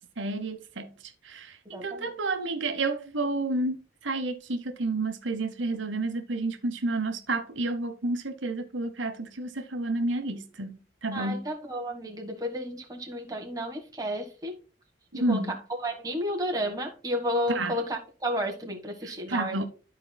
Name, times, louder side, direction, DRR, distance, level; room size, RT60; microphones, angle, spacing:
voice 1, 0.2-0.9 1.2-11.5 15.1-15.6 17.5-17.8 19.0-19.6, right 2 dB, 80° right, 0.9 m, -30 dB
voice 2, 1.7-2.1 11.1-14.6 15.1-15.6 15.8-19.6, equal, 20° right, 1.4 m, -32 dB
13.5 x 4.5 x 2.2 m
head